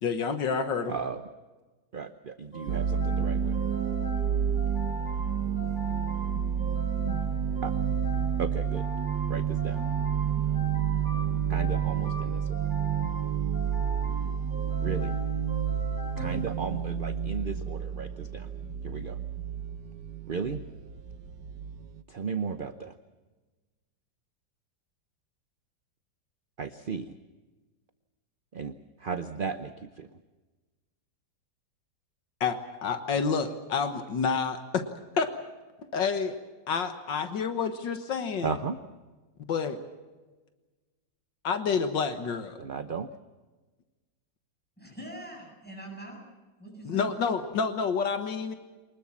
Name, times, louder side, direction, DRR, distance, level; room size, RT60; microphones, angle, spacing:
voice 1, 0.0-1.0 32.4-34.9 35.2-35.3 35.9-36.4 36.7-38.6 39.5-39.8 41.4-42.6 46.9-48.5, left 5 dB, 75° left, 9 dB, 2.0 m, -29 dB
voice 2, 0.9-1.2 1.9-3.6 4.3-4.4 7.0-7.2 7.6-7.7 8.4-8.9 9.3-9.9 11.5-12.5 14.8-15.2 16.2-18.5 18.8-19.2 20.3-20.6 22.1-22.9 26.6-27.1 28.5-30.1 38.4-38.8 42.6-43.1, right 5 dB, 45° right, 10 dB, 0.7 m, -35 dB
sound 1, 2.5-17.1, equal, 40° left, 3.4 m, -42 dB
sound 2, 2.7-22.0, right 8 dB, 70° right, 1.5 m, -30 dB
voice 3, 44.8-46.2 46.6-47.1, right 1 dB, 5° left, 0 dB, 8.0 m, -43 dB
24.0 x 20.5 x 7.3 m, 1.2 s
omnidirectional pair, 2.0 m